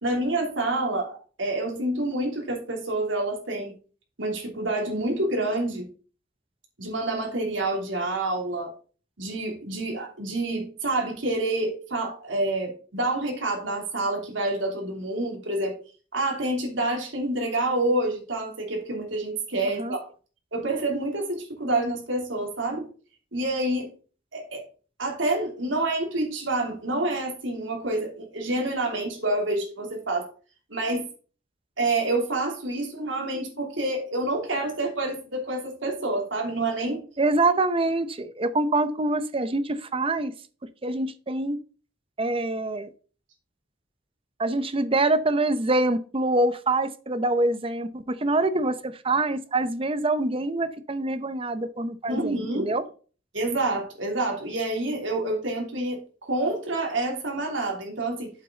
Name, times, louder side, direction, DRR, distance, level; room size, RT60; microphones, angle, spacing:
voice 1, 0.0-3.7 4.2-5.9 6.8-8.7 9.2-15.7 16.1-20.0 20.5-22.9 23.3-23.9 24.3-24.6 25.0-30.3 30.7-31.1 31.8-37.0 52.1-52.7 53.3-58.3, right 2 dB, 80° right, 1 dB, 3.2 m, -28 dB
voice 2, 37.2-40.3 40.8-41.6 42.2-42.9 44.4-52.8, right 2 dB, 30° right, 12 dB, 0.7 m, -25 dB
8.3 x 7.7 x 3.9 m, 0.39 s
head